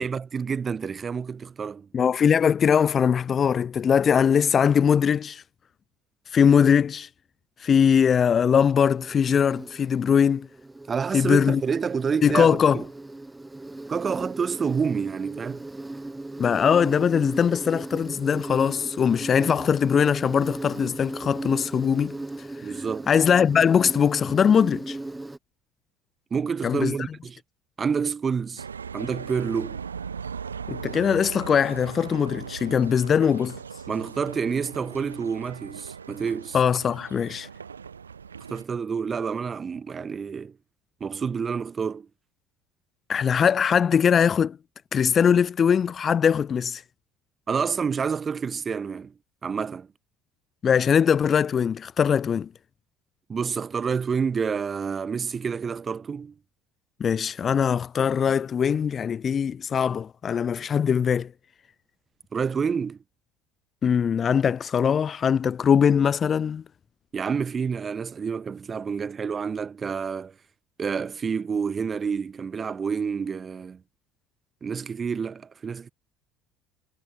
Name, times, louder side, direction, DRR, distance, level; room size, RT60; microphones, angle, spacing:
voice 1, 0.0-1.9 10.9-12.8 13.9-15.7 19.4-19.5 22.6-23.1 26.3-27.4 27.8-28.6 28.9-29.8 33.9-36.6 38.5-40.5 41.0-42.1 47.5-49.1 49.4-49.9 53.3-56.3 62.3-63.0 67.1-70.3 70.8-73.8 74.6-75.9, right 6 dB, 30° right, 1.2 m, -28 dB
voice 2, 1.9-5.4 6.3-7.1 7.6-10.5 11.1-11.6 12.2-12.8 16.4-22.2 23.1-25.0 26.6-27.0 30.7-33.6 36.5-37.5 43.1-44.6 44.9-46.8 50.6-52.5 57.0-61.3 63.8-66.6, left 7 dB, 35° left, 0.5 m, -21 dB
Insect, 8.7-25.4, right 2 dB, 10° right, 2.0 m, -37 dB
sound 1, 28.6-38.6, right 6 dB, 80° right, 0.3 m, -39 dB
figure-of-eight pair, 60°, 0 cm